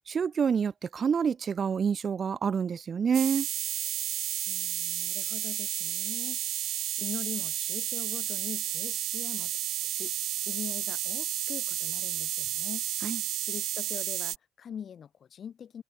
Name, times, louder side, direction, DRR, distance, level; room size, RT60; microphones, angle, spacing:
voice 1, 0.1-3.5 13.0-13.2, right 6 dB, 40° right, 1.9 m, -27 dB
sound 1, 3.1-14.4, right 14 dB, 70° right, 2.4 m, -32 dB
voice 2, 4.5-9.6 9.9-12.8 13.4-15.8, left 8 dB, 50° left, 2.6 m, -43 dB
cardioid pair, 95°, 0 cm